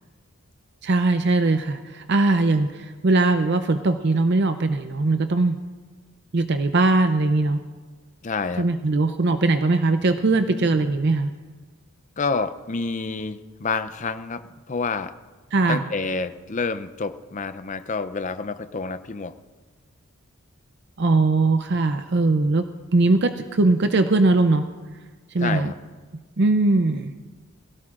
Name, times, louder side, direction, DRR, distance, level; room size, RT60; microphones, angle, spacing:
voice 1, 0.8-5.6 6.3-7.6 8.6-11.3 15.5-15.8 21.0-22.7 22.9-24.6 25.3-25.7 26.4-27.1, right 2 dB, 50° right, 8 dB, 0.5 m, -20 dB
voice 2, 8.2-8.7 12.2-15.1 15.7-19.4 25.4-25.8, left 4 dB, 35° left, 11 dB, 0.5 m, -28 dB
22.5 x 17.0 x 2.5 m, 1.4 s
head